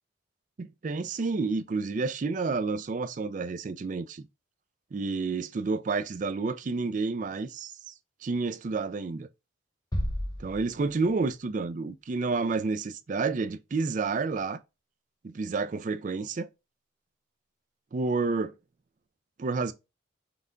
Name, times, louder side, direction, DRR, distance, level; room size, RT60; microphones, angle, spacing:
voice 1, 0.6-4.2 4.9-7.9 8.2-9.3 10.4-14.6 15.2-16.5 17.9-18.5 19.4-19.7, right 4 dB, 40° right, 0.3 m, -30 dB
sound 1, 9.9-11.5, equal, 20° left, 0.8 m, -33 dB
5.8 x 2.2 x 3.7 m
head